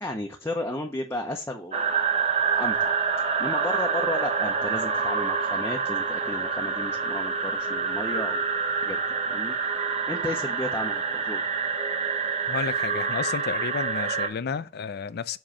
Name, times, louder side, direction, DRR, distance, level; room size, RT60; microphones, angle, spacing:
voice 1, 0.0-1.9 2.5-2.9 3.4-8.5 8.8-9.0 9.3-9.5 10.1-11.4, left 1 dB, 15° left, 0.6 m, -33 dB
sound 1, 1.7-14.3, right 5 dB, 35° right, 0.8 m, -27 dB
voice 2, 12.5-15.4, left 6 dB, 55° left, 0.4 m, -31 dB
7.5 x 3.0 x 4.9 m
head